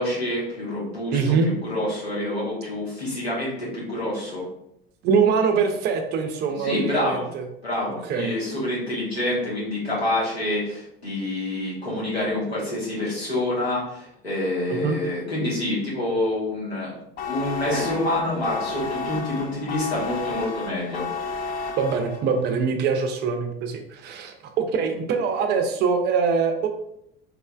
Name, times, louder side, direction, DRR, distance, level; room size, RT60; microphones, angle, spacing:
voice 1, 0.0-4.5 6.6-7.2 7.6-16.9 17.2-21.1, left 1 dB, 90° left, -7 dB, 1.3 m, -27 dB
voice 2, 1.1-1.5 5.0-7.5 8.0-8.3 14.7-15.0 21.8-26.7, right 5 dB, 35° right, 5 dB, 0.5 m, -23 dB
sound 1, 17.2-22.4, left 4 dB, 30° left, 0.5 m, -32 dB
3.5 x 3.1 x 2.2 m, 0.77 s
figure-of-eight pair, 70°, 30 cm